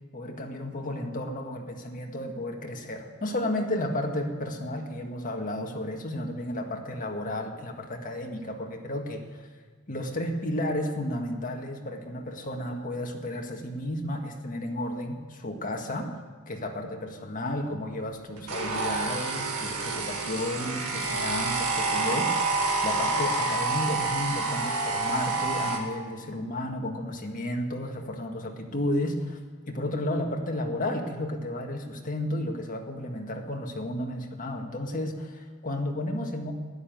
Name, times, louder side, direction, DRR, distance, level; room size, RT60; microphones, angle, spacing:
voice 1, 0.1-9.2 9.9-16.1 16.5-22.6 22.8-29.4 29.7-36.5, left 1 dB, 40° left, 2 dB, 1.8 m, -32 dB
sound 1, 18.5-25.8, right 3 dB, 75° right, 2.1 m, -28 dB
12.5 x 11.5 x 9.2 m, 1.5 s
head